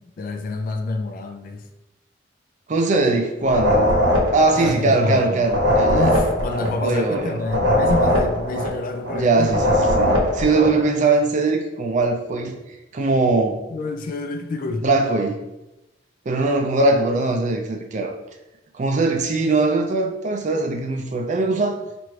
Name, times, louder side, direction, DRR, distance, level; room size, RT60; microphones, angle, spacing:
voice 1, 0.0-1.7 4.5-5.4 5.9-9.6 13.7-14.9, left 3 dB, 50° left, 6 dB, 0.4 m, -27 dB
voice 2, 2.7-4.0 4.3-6.1 6.8-7.4 9.1-12.6 12.9-13.6 14.8-15.4 16.3-18.1 18.7-21.8, right 3 dB, 40° right, 3 dB, 0.4 m, -21 dB
sound 1, 3.4-10.8, equal, 90° right, 0.9 m, -20 dB
4.4 x 2.6 x 3.1 m, 0.98 s
head